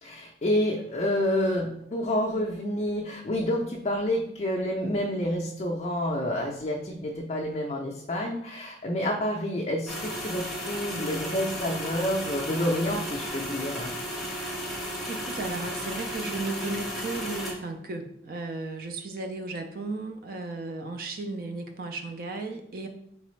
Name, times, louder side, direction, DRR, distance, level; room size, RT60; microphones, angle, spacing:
voice 1, 0.0-13.9, left 1 dB, 35° left, -1 dB, 0.4 m, -29 dB
sound 1, 9.9-17.5, equal, ahead, 0.7 m, -34 dB
voice 2, 15.1-22.9, right 3 dB, 50° right, 5 dB, 0.4 m, -35 dB
3.9 x 3.3 x 3.1 m, 0.74 s
head